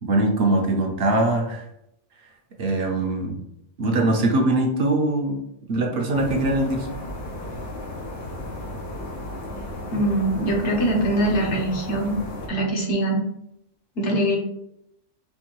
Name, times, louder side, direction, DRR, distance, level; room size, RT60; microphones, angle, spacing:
voice 1, 0.0-1.7 2.6-3.4 3.8-5.4 5.7-6.9, right 2 dB, 60° right, 1 dB, 0.8 m, -22 dB
sound 1, 6.1-12.5, left 1 dB, 90° left, 1.2 m, -34 dB
voice 2, 9.9-12.1 12.5-13.2 14.0-14.4, right 1 dB, 70° left, 0 dB, 1.2 m, -22 dB
4.4 x 2.6 x 2.9 m, 0.77 s
omnidirectional pair, 1.3 m